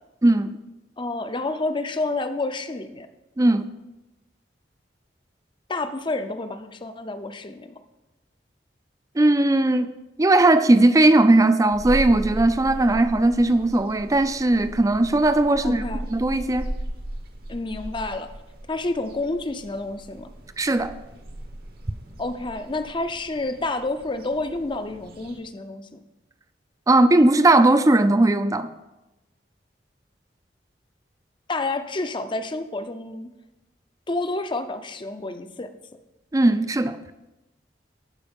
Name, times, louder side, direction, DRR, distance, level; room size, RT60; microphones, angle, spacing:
voice 1, 0.2-0.6 3.4-3.6 9.2-9.9 10.2-15.8 16.1-16.7 20.6-20.9 26.9-28.7 36.3-37.0, right 2 dB, 20° right, 0.4 m, -18 dB
voice 2, 1.0-3.1 5.7-7.7 15.6-16.0 17.5-18.3 18.7-20.3 22.2-26.0 31.5-33.3 34.1-35.7, left 2 dB, 30° left, 0.6 m, -29 dB
sound 1, 11.7-25.4, right 1 dB, 60° right, 1.1 m, -37 dB
12.0 x 4.7 x 5.3 m
head